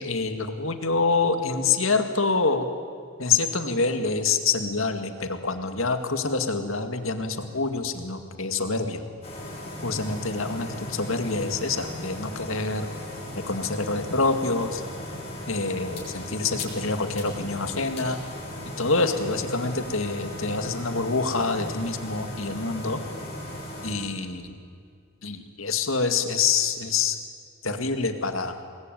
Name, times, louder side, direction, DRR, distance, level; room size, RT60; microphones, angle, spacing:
voice 1, 0.0-2.7 3.2-9.0 9.8-12.9 13.3-14.8 15.5-18.2 18.8-23.0 23.8-24.5 25.2-27.2 27.6-28.6, left 4 dB, 75° left, 7 dB, 2.2 m, -26 dB
sound 1, 9.2-23.9, left 1 dB, 30° left, 7.0 m, -37 dB
27.5 x 21.0 x 9.3 m, 2.2 s
head